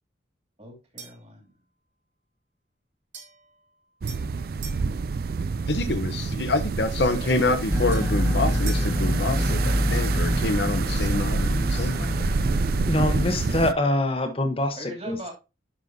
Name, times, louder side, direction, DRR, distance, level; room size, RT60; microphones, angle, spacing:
voice 1, 0.6-1.5 7.0-7.6 14.8-15.3, right 1 dB, 35° right, 2.6 m, -39 dB
sound 1, 1.0-1.3 3.1-4.9 7.3-9.0, right 7 dB, 80° right, 2.6 m, -44 dB
sound 2, 4.0-13.7, right 4 dB, 50° right, 0.3 m, -28 dB
voice 2, 5.7-12.3, left 2 dB, 65° left, 0.8 m, -27 dB
sound 3, 7.7-13.7, equal, 15° right, 1.5 m, -26 dB
voice 3, 12.9-15.2, left 1 dB, 30° left, 1.0 m, -24 dB
10.0 x 5.5 x 2.7 m
head